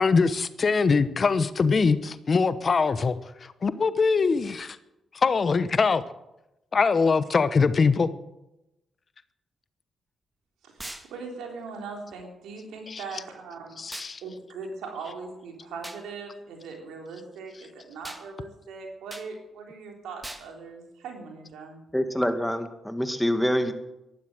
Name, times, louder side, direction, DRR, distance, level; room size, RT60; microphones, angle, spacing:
voice 1, 0.0-3.2 3.4-4.8 5.1-6.0 6.7-8.1 12.9-13.0 13.8-14.2, left 4 dB, 50° left, 14 dB, 0.9 m, -22 dB
voice 2, 10.6-13.9 14.2-21.8, right 4 dB, 80° right, 2 dB, 3.5 m, -40 dB
sound 1, 10.8-11.1 13.9-14.1 15.8-16.0 18.0-18.3 19.1-19.3 20.2-20.5, right 1 dB, 15° right, 2.0 m, -39 dB
voice 3, 21.9-23.7, equal, 5° left, 8 dB, 2.1 m, -25 dB
14.0 x 11.5 x 7.8 m, 0.93 s
supercardioid pair, 45°, 0 cm